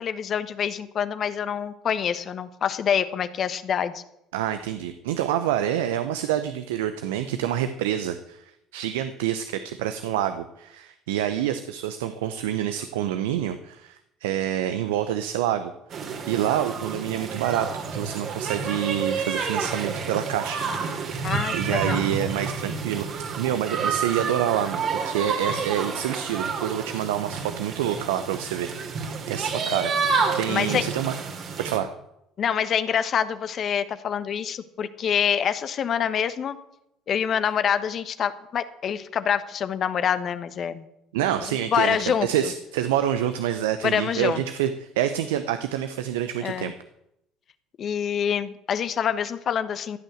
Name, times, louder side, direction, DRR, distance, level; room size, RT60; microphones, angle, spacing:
voice 1, 0.0-4.0 21.2-22.0 30.5-30.8 32.4-36.6 37.1-40.8 41.5-42.3 43.8-44.4 46.4-46.7 47.8-50.0, left 8 dB, 50° left, 12 dB, 1.2 m, -26 dB
voice 2, 4.3-8.4 8.7-15.7 16.3-28.9 29.3-31.1 31.6-31.9 41.1-46.7, right 11 dB, 80° right, 10 dB, 0.8 m, -27 dB
sound 1, 15.9-31.8, right 5 dB, 55° right, 2.9 m, -29 dB
15.0 x 9.1 x 7.8 m, 0.82 s
hypercardioid pair, 60°, 0 cm